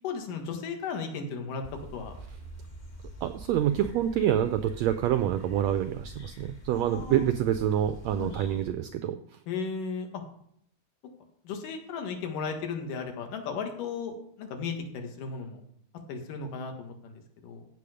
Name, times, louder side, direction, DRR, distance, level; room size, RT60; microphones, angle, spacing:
voice 1, 0.0-1.6 1.9-2.1 6.7-7.3 8.2-8.3 9.5-10.1 11.4-15.6 16.1-17.7, left 5 dB, 85° left, 4 dB, 3.3 m, -35 dB
sound 1, 1.6-8.7, right 1 dB, 25° left, 0.9 m, -45 dB
voice 2, 3.2-9.2, right 11 dB, 90° right, 10 dB, 1.5 m, -27 dB
15.5 x 6.9 x 5.0 m, 0.68 s
omnidirectional pair, 3.7 m